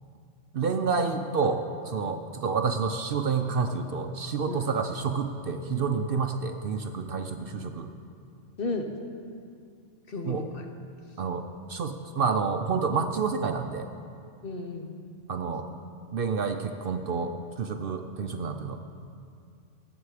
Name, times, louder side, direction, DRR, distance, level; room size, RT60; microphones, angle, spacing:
voice 1, 0.5-7.9 10.2-10.5 11.2-13.9 15.3-15.7 16.1-18.8, right 5 dB, 55° right, 6 dB, 0.7 m, -29 dB
voice 2, 8.6-8.9 10.1-10.6 14.4-14.9, left 3 dB, 50° left, 4 dB, 1.1 m, -34 dB
17.5 x 9.0 x 4.8 m, 2.4 s
omnidirectional pair, 1.3 m